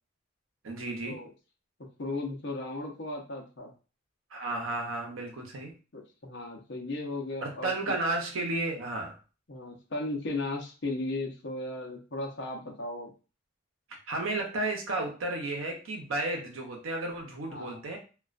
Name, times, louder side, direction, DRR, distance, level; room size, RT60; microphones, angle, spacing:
voice 1, 0.6-1.2 4.3-5.7 7.4-9.1 14.1-18.0, right 2 dB, 90° right, 1 dB, 0.7 m, -33 dB
voice 2, 2.0-3.7 5.9-8.0 9.5-13.1 17.5-17.9, left 2 dB, 60° left, 1 dB, 0.6 m, -36 dB
2.3 x 2.2 x 2.4 m, 0.34 s
head